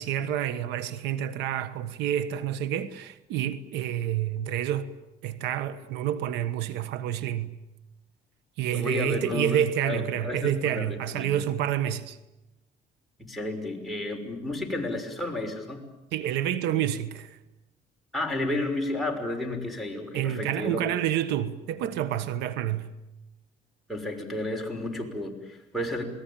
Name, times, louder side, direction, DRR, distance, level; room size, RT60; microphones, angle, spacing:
voice 1, 0.0-4.9 5.2-7.5 8.6-12.2 16.1-17.4 20.1-22.9, right 10 dB, 90° right, 1.4 m, -28 dB
voice 2, 8.7-11.3 13.2-15.8 18.1-20.8 23.9-26.0, left 1 dB, ahead, 6.0 m, -32 dB
28.5 x 20.0 x 8.9 m
cardioid pair, 110°, 17 cm